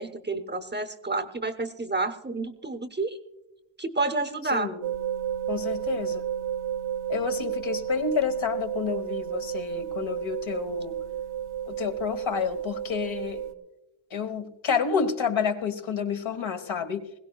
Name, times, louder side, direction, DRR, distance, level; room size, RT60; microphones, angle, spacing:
voice 1, 0.0-3.2 3.8-4.7, right 3 dB, 20° right, 9 dB, 0.6 m, -29 dB
sound 1, 4.8-13.5, right 10 dB, 85° right, 0.9 m, -32 dB
voice 2, 5.5-6.2 7.1-11.0 11.7-13.4 14.1-17.0, left 6 dB, 70° left, 7 dB, 1.2 m, -29 dB
21.0 x 17.0 x 2.3 m, 0.96 s
wide cardioid pair, 150°, 48 cm